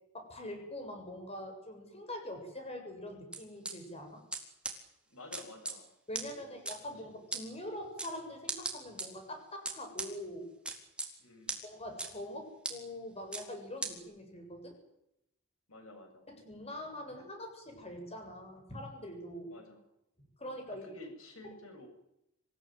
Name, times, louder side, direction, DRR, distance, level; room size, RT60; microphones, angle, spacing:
voice 1, 0.1-4.2 6.1-10.5 11.6-14.8 16.3-19.5 20.4-20.9, left 1 dB, 30° left, 4 dB, 7.5 m, -44 dB
sound 1, 3.3-3.7 4.3-4.4 4.6-4.7 5.3-5.7 6.1-6.2 6.7-6.8 7.3-7.4 8.0-8.1 8.5-9.1 9.7-10.1 10.7-11.1 11.5-11.6 12.0-12.1 12.6-12.7 13.3-13.4 13.8-13.9, right 3 dB, 5° right, 4.0 m, -36 dB
voice 2, 5.1-5.9 6.2-6.5 11.2-11.6 15.7-16.3 19.5-19.8 20.7-21.9, left 2 dB, 70° left, 5 dB, 8.0 m, -51 dB
26.5 x 17.0 x 9.5 m, 0.82 s
head